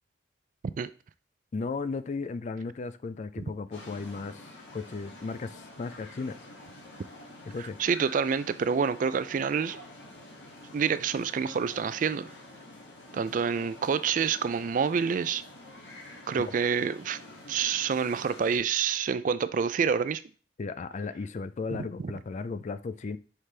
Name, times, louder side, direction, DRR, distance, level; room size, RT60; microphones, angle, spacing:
voice 1, 1.5-6.4 7.5-7.8 20.6-23.2, left 4 dB, 40° left, 0.4 m, -35 dB
sound 1, 3.7-18.6, left 1 dB, 85° left, 1.8 m, -48 dB
voice 2, 7.8-9.8 10.7-12.3 13.1-15.4 16.3-17.2 17.5-20.2 22.0-22.1, right 6 dB, 45° right, 0.3 m, -27 dB
5.8 x 4.9 x 3.3 m
head